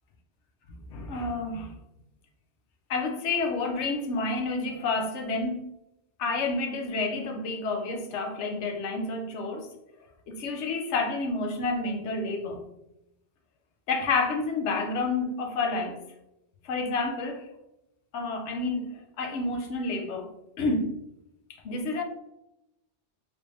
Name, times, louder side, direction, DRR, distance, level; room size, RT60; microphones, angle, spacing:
voice 1, 0.9-1.7 2.9-5.7 6.2-9.7 10.3-12.6 13.9-16.0 16.6-17.5 18.1-20.3 20.6-21.0 21.5-22.0, left 3 dB, 90° left, 0.9 m, -29 dB
3.5 x 3.3 x 2.5 m
omnidirectional pair, 1.2 m